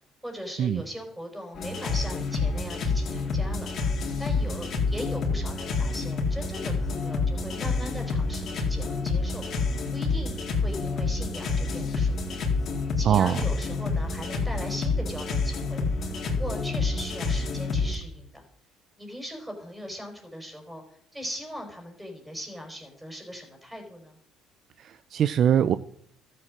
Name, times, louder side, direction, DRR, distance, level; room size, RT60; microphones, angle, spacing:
voice 1, 0.2-3.7 4.2-12.4 13.0-15.8 16.4-18.4 19.0-20.8 21.1-24.2, equal, 5° right, 3 dB, 4.6 m, -39 dB
sound 1, 1.6-17.9, left 3 dB, 50° left, 3.6 m, -28 dB
voice 2, 13.1-13.4 24.8-25.8, right 9 dB, 55° right, 14 dB, 0.5 m, -22 dB
13.0 x 7.8 x 7.4 m, 0.64 s
supercardioid pair, 95°, 0 cm